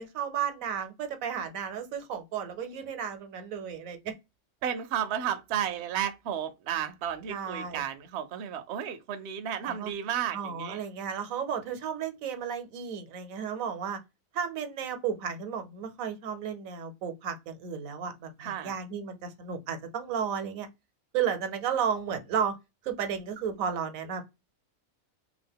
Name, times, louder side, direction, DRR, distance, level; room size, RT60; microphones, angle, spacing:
voice 1, 0.0-4.1 7.3-7.8 9.6-9.9 10.3-14.0 14.3-20.7 21.1-22.6 22.8-24.2, right 7 dB, 80° right, 1.1 m, -33 dB
voice 2, 4.6-10.8 18.4-18.7, right 9 dB, 65° right, 0.7 m, -33 dB
2.8 x 2.4 x 3.4 m
omnidirectional pair, 1.4 m